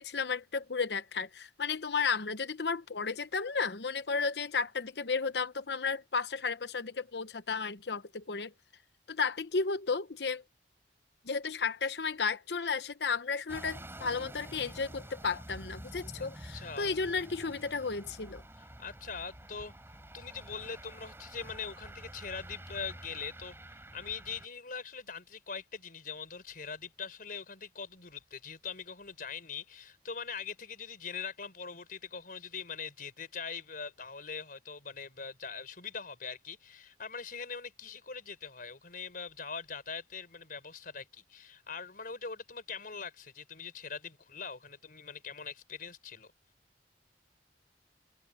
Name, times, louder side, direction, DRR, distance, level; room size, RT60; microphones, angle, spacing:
voice 1, 0.0-8.5 9.1-10.4 11.2-18.4, left 5 dB, 70° left, 0.9 m, -33 dB
sound 1, 13.5-24.5, right 1 dB, 15° right, 4.8 m, -48 dB
voice 2, 16.5-17.0 18.6-19.7 20.1-23.6 23.9-46.3, left 5 dB, 55° left, 4.7 m, -42 dB
head